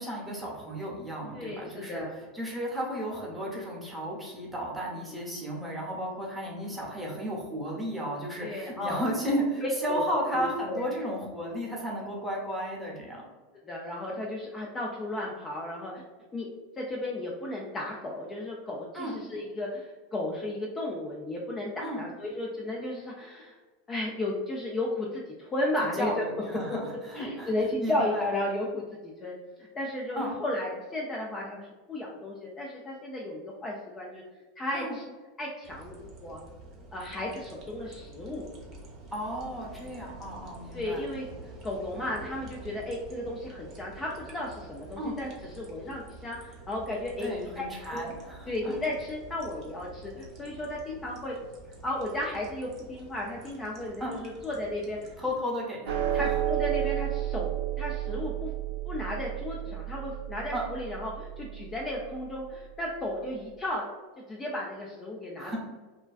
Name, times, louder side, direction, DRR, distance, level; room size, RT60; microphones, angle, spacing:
voice 1, 0.0-2.0 2.3-13.2 18.9-19.1 21.8-22.0 25.9-27.5 27.8-28.3 30.2-30.4 34.7-35.0 39.1-41.1 45.0-45.2 47.2-48.8 54.0-54.1 55.2-56.3 60.5-60.7 65.4-65.6, equal, 5° right, -5 dB, 0.9 m, -34 dB
voice 2, 1.3-2.1 5.0-5.2 8.4-9.1 9.6-10.0 10.3-10.8 13.7-16.0 16.3-16.5 16.8-23.6 23.9-26.2 26.7-26.8 27.1-34.2 34.6-35.0 35.4-36.4 36.9-38.5 40.7-41.3 41.6-47.5 47.9-48.0 48.5-51.3 51.8-55.2 56.1-57.5 57.8-58.5 58.9-63.8 64.3-65.6, left 1 dB, 25° left, -3 dB, 0.4 m, -34 dB
sound 1, 35.6-55.3, right 2 dB, 45° right, 0.6 m, -48 dB
sound 2, 55.9-62.4, right 12 dB, 70° right, 0.3 m, -32 dB
2.4 x 2.2 x 2.4 m, 1.3 s
hypercardioid pair, 90°, 0 cm